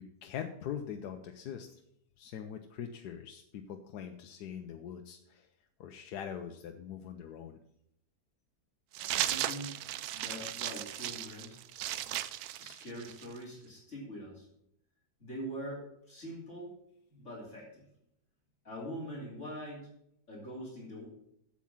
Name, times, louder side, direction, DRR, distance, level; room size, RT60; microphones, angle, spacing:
voice 1, 0.0-1.8 2.2-5.5 5.8-7.6, left 8 dB, 75° left, 5 dB, 1.3 m, -42 dB
sound 1, 8.9-13.4, right 13 dB, 75° right, 1.0 m, -36 dB
voice 2, 9.2-9.8 10.1-11.6 12.6-14.5 15.2-16.7 17.1-17.8 18.6-19.9 20.3-21.1, equal, 45° left, -4 dB, 3.4 m, -43 dB
8.4 x 7.3 x 7.3 m, 0.76 s
omnidirectional pair, 1.7 m